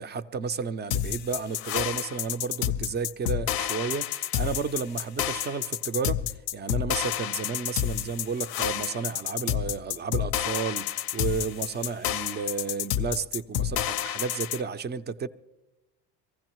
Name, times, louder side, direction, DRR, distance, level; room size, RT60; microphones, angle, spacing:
voice 1, 0.0-15.3, right 5 dB, 25° right, 0.5 m, -32 dB
sound 1, 0.9-14.6, left 11 dB, 50° left, 0.6 m, -29 dB
23.0 x 15.5 x 3.0 m
supercardioid pair, 80°, 48 cm